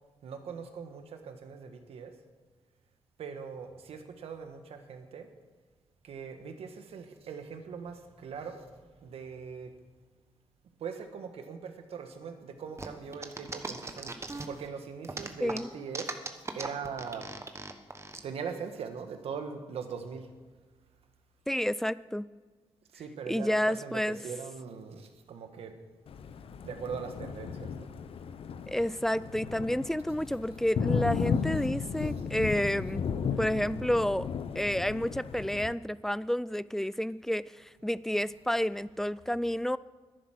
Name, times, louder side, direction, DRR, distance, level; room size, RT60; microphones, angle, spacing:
voice 1, 0.2-2.1 3.2-5.3 6.0-9.7 10.8-16.1 16.5-17.2 18.2-20.3 22.9-25.7 26.6-27.9 32.0-32.3 37.8-37.9 38.4-39.1, right 6 dB, 85° right, 6 dB, 1.4 m, -41 dB
sound 1, 12.8-14.7 15.0-18.2, right 3 dB, 30° right, 1.2 m, -38 dB
voice 2, 21.5-22.3 23.3-24.2 28.7-33.0 33.4-34.3 34.6-39.8, equal, 5° left, 18 dB, 0.3 m, -30 dB
Thunder, 26.1-35.7, left 6 dB, 70° left, 0.7 m, -35 dB
11.0 x 10.0 x 6.3 m, 1.4 s
cardioid pair, 70°, 10 cm